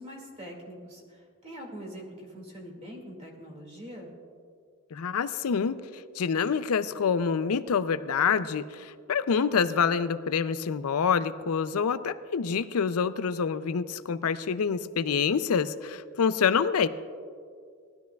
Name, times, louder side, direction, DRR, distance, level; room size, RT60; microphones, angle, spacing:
voice 1, 0.0-4.1, equal, 30° right, -1 dB, 2.1 m, -43 dB
voice 2, 4.9-5.8 6.2-16.9, left 6 dB, 75° left, 13 dB, 0.5 m, -26 dB
19.0 x 12.5 x 2.3 m, 2.2 s
head